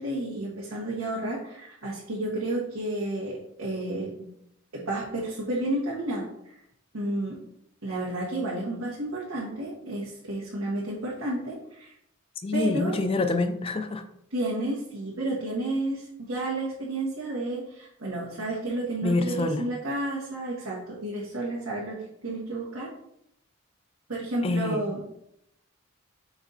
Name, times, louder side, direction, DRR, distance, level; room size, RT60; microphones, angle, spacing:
voice 1, 0.0-4.3 4.7-6.6 6.9-7.4 7.8-11.9 12.5-13.0 14.3-22.0 22.2-22.9 24.1-25.0, right 1 dB, 85° right, -6 dB, 1.5 m, -31 dB
voice 2, 12.4-14.0 19.0-19.6 24.4-24.8, left 2 dB, 25° left, 7 dB, 0.4 m, -26 dB
5.8 x 4.1 x 4.0 m, 0.75 s
head